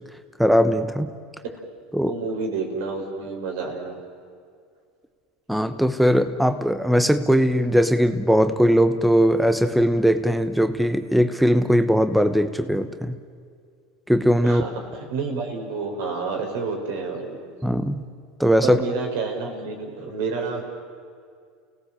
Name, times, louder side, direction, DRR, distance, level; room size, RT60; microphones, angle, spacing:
voice 1, 0.4-1.1 1.9-2.1 5.5-13.2 14.1-14.6 17.6-18.0 18.4-18.8, equal, ahead, 9 dB, 1.1 m, -19 dB
voice 2, 1.9-4.0 14.4-17.4 18.6-20.6, right 4 dB, 75° right, 2 dB, 5.3 m, -29 dB
30.0 x 18.0 x 7.6 m, 2.2 s
supercardioid pair, 100°, 0 cm